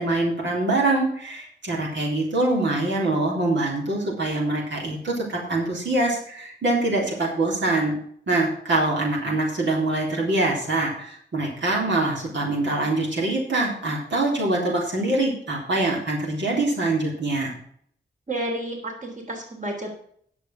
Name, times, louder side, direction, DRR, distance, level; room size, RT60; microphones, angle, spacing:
voice 1, 0.0-7.9 8.3-17.5, right 2 dB, 75° right, -2 dB, 3.6 m, -24 dB
voice 2, 18.3-19.9, right 1 dB, 40° right, 2 dB, 3.4 m, -31 dB
10.5 x 7.1 x 6.1 m, 0.63 s
cardioid pair, 60°, 19 cm